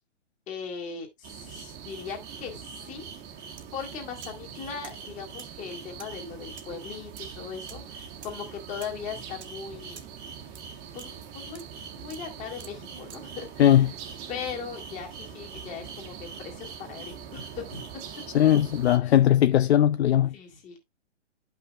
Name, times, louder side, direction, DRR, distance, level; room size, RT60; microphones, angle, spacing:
voice 1, 0.5-3.1 3.3-10.1 10.9-11.6 12.0-13.9 14.3-18.0 19.0-19.1 20.3-20.8, left 6 dB, 20° left, 2.0 m, -39 dB
sound 1, 1.2-19.0, right 7 dB, 30° right, 1.2 m, -42 dB
sound 2, 3.5-3.7 3.9-4.4 4.8-13.4, right 7 dB, 65° right, 1.5 m, -49 dB
voice 2, 13.6-13.9 18.3-20.3, left 11 dB, 60° left, 0.5 m, -19 dB
11.5 x 5.7 x 2.3 m
hypercardioid pair, 145°, 36 cm